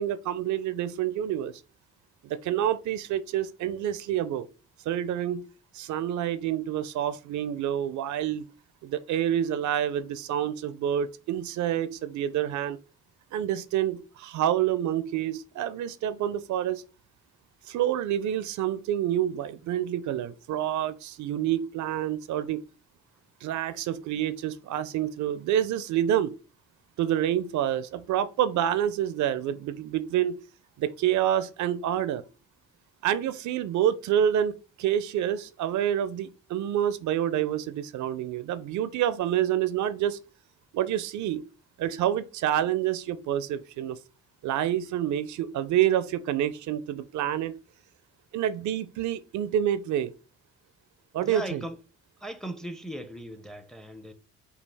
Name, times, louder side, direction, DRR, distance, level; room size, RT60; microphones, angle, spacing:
voice 1, 0.0-1.5 2.2-4.5 4.9-5.4 5.7-8.5 8.8-12.8 13.3-16.8 17.7-22.6 23.4-26.3 27.0-30.4 30.8-32.2 33.0-40.2 40.7-41.4 41.8-44.0 44.4-47.5 48.3-50.1 51.1-51.7, right 10 dB, 70° right, 0.5 m, -28 dB
voice 2, 51.2-51.8 52.2-54.1, right 1 dB, ahead, 0.5 m, -38 dB
5.2 x 2.4 x 3.4 m
cardioid pair, 90°, 30 cm